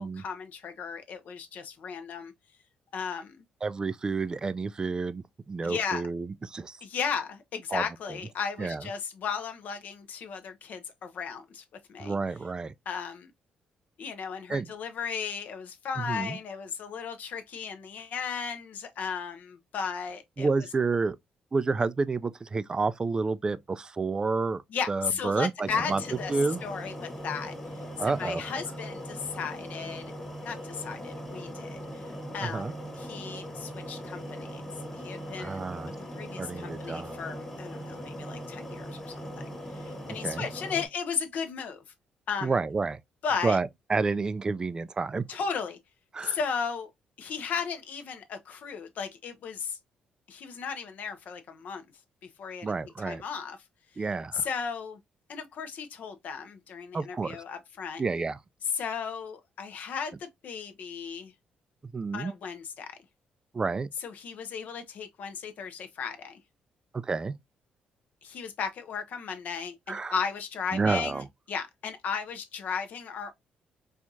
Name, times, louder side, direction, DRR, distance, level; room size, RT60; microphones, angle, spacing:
voice 1, 0.0-2.3 2.9-3.4 5.6-6.0 6.8-11.6 11.9-12.1 12.9-13.3 14.0-20.5 24.7-26.3 26.6-27.5 28.0-30.0 30.4-32.0 32.3-34.6 34.9-39.5 39.8-41.8 42.3-42.5 43.2-43.6 45.3-45.8 46.2-46.9 47.2-49.8 50.3-51.8 52.4-52.7 53.0-53.6 54.3-55.0 55.3-58.0 58.7-61.3 62.1-63.0 64.0-66.4 68.2-71.2 71.5-73.3, left 6 dB, 65° left, 0.7 m, -35 dB
voice 2, 3.6-6.8 7.7-8.2 8.6-8.9 12.0-12.7 14.5-14.7 16.0-16.4 20.4-21.2 21.5-24.6 24.9-26.0 26.3-26.6 28.0-28.4 32.4-32.7 35.4-35.9 36.4-37.2 40.1-40.5 42.4-43.0 43.4-45.4 46.1-46.4 52.6-53.2 54.0-54.5 56.9-57.4 58.0-58.4 61.9-62.3 63.5-63.9 67.0-67.3 69.9-70.1 70.7-71.3, right 4 dB, 25° right, 0.3 m, -29 dB
sound 1, 25.7-40.9, equal, 15° left, 1.3 m, -40 dB
4.4 x 2.4 x 2.6 m
cardioid pair, 105°, 3 cm